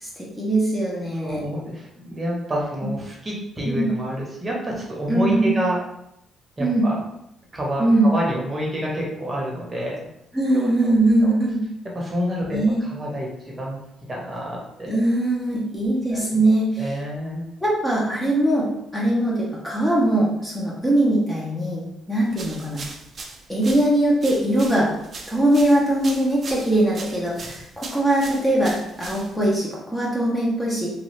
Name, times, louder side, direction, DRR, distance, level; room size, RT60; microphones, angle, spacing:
voice 1, 0.0-1.4 2.8-2.9 3.6-3.9 5.1-5.5 6.6-6.9 7.8-8.1 10.3-11.6 12.4-12.8 14.9-16.9 17.6-18.7 18.9-22.9 23.5-24.9 25.3-30.9, right 1 dB, 10° left, -5 dB, 0.7 m, -21 dB
voice 2, 1.2-5.8 6.6-7.0 7.5-10.1 10.5-10.9 11.2-11.3 11.9-13.8 14.1-15.0 16.1-16.4 16.8-17.4 27.4-27.5, equal, 25° right, -3 dB, 0.9 m, -28 dB
sound 1, 22.3-29.6, right 3 dB, 40° right, 0.5 m, -39 dB
2.6 x 2.3 x 3.1 m, 0.81 s
cardioid pair, 95°, 0 cm